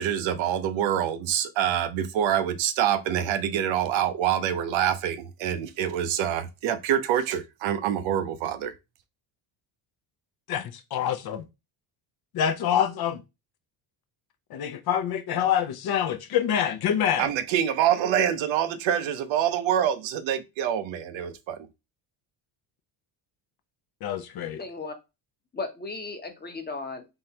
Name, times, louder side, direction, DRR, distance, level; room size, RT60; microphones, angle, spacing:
voice 1, 0.0-8.7 17.2-21.6, right 10 dB, 75° right, 0.7 m, -26 dB
voice 2, 10.5-11.4 12.3-13.2 14.5-17.3 24.0-24.6, left 9 dB, 55° left, 0.6 m, -26 dB
voice 3, 24.6-24.9 25.5-27.2, left 3 dB, 20° left, 0.9 m, -36 dB
3.6 x 3.2 x 2.8 m
cardioid pair, 105°, 47 cm